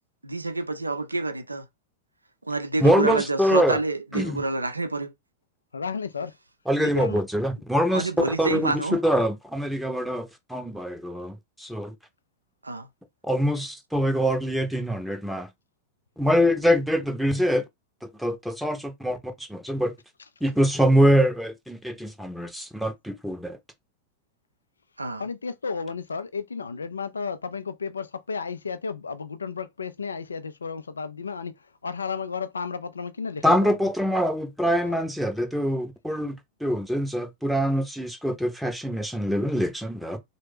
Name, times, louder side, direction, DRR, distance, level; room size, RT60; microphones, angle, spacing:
voice 1, 0.2-1.6 2.5-5.1 7.9-9.0 12.6-12.9 25.0-25.3, right 3 dB, 80° right, 0.4 m, -28 dB
voice 2, 2.8-3.8 4.1-4.4 6.7-11.9 13.3-15.5 16.2-17.6 18.0-19.2 19.5-19.9 20.4-23.6 33.4-40.2, equal, ahead, 0.7 m, -24 dB
voice 3, 5.7-6.3 6.8-7.2 25.2-31.5 31.8-33.8 34.8-34.9, left 5 dB, 75° left, 0.3 m, -33 dB
3.2 x 2.1 x 3.3 m
figure-of-eight pair, 90°, 0 cm